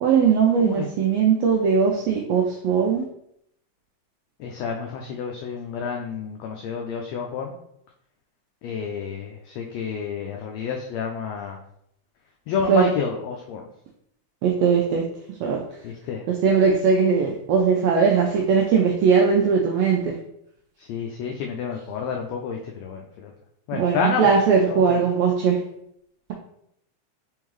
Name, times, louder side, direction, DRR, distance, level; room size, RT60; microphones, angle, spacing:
voice 1, 0.0-3.0 12.7-12.9 14.4-15.0 15.4-15.6 16.4-20.1 23.7-25.6, right 6 dB, 85° right, 0 dB, 1.4 m, -19 dB
voice 2, 0.6-0.9 4.4-7.6 8.6-11.6 12.5-13.7 15.8-16.2 20.8-23.3 23.7-24.3 24.7-25.0, left 6 dB, 85° left, 1 dB, 1.5 m, -30 dB
4.6 x 3.6 x 3.1 m, 0.74 s
omnidirectional pair, 3.5 m